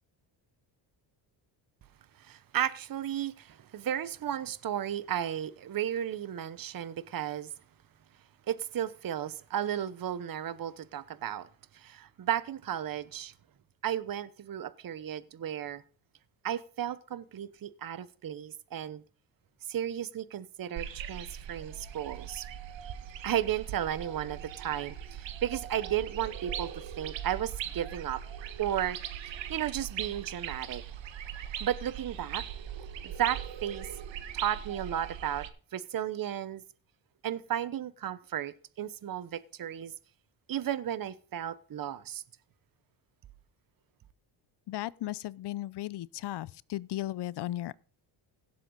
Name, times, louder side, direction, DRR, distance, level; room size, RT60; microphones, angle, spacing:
voice 1, 2.2-7.5 8.5-11.5 11.7-13.3 13.8-15.8 16.4-19.0 19.7-22.5 23.2-28.2 28.6-29.0 29.3-30.8 31.6-32.4 33.0-33.9 34.3-35.5 35.7-36.6 37.2-39.9 40.5-42.2, right 10 dB, 45° right, 1.0 m, -34 dB
sound 1, 20.8-35.5, right 9 dB, 65° right, 1.4 m, -40 dB
voice 2, 44.7-47.8, left 14 dB, 55° left, 0.6 m, -36 dB
17.0 x 7.6 x 4.0 m
cardioid pair, 90°, 49 cm